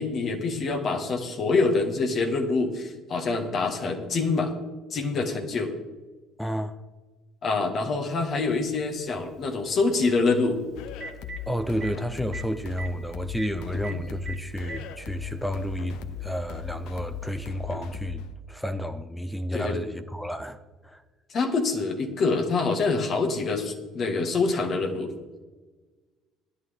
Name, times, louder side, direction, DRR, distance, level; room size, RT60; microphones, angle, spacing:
voice 1, 0.0-4.5 4.9-5.7 7.4-10.6 19.5-19.7 21.3-25.1, left 3 dB, 50° left, 1.9 m, -25 dB
voice 2, 6.4-6.8 11.5-20.6 20.8-21.0, equal, 5° left, 0.9 m, -31 dB
Telephone, 8.2-8.3 10.5-10.6 10.9-11.4 11.8-11.9 12.3-12.4 12.7-12.9 13.4-13.5 13.8-13.9 14.3-14.8 15.8-15.9 17.4-17.5, right 4 dB, 45° right, 2.0 m, -37 dB
sound 1, 10.7-18.3, left 7 dB, 65° left, 0.7 m, -38 dB
15.5 x 11.0 x 3.7 m
hypercardioid pair, 55°, 0 cm